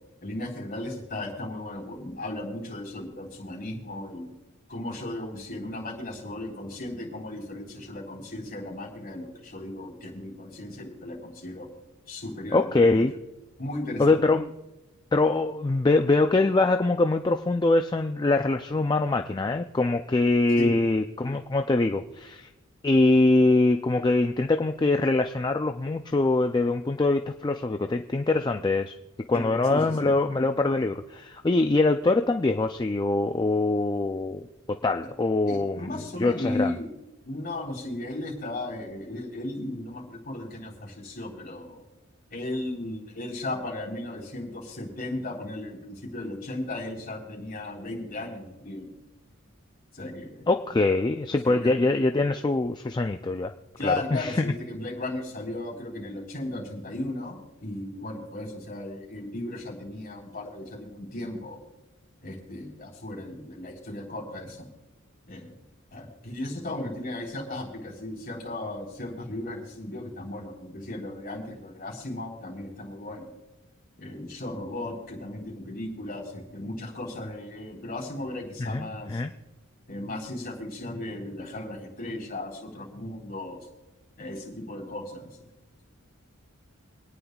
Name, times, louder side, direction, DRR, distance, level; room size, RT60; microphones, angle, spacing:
voice 1, 0.2-4.3 4.7-11.7 12.1-13.1 13.6-14.2 20.6-20.7 29.3-30.1 35.5-36.9 37.2-41.8 42.3-48.9 49.9-50.8 51.4-51.8 53.8-61.6 62.2-64.7 65.3-65.6 65.9-73.3 74.0-79.2 79.9-83.6 84.2-85.4, left 1 dB, 45° left, -3 dB, 4.0 m, -36 dB
voice 2, 12.5-13.2 14.0-14.5 15.1-22.5 22.8-28.9 29.3-34.5 34.8-35.9 36.2-36.7 50.5-53.5 53.8-54.5 78.6-79.3, left 2 dB, 20° left, 6 dB, 0.4 m, -23 dB
27.5 x 9.6 x 2.3 m, 1.1 s
head